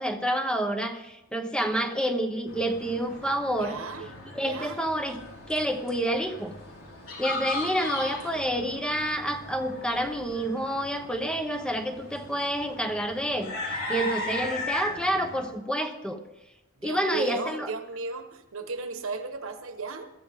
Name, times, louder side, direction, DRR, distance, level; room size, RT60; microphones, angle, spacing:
voice 1, 0.0-3.8 4.3-5.2 5.5-6.5 7.2-16.2 16.8-17.7, equal, 5° left, 6 dB, 1.0 m, -28 dB
sound 1, 2.5-15.5, left 2 dB, 75° left, 4.7 m, -38 dB
voice 2, 3.6-4.1 4.4-4.8 8.0-8.5 16.8-20.1, right 4 dB, 75° right, 8 dB, 1.4 m, -35 dB
21.0 x 14.0 x 3.7 m, 0.94 s
head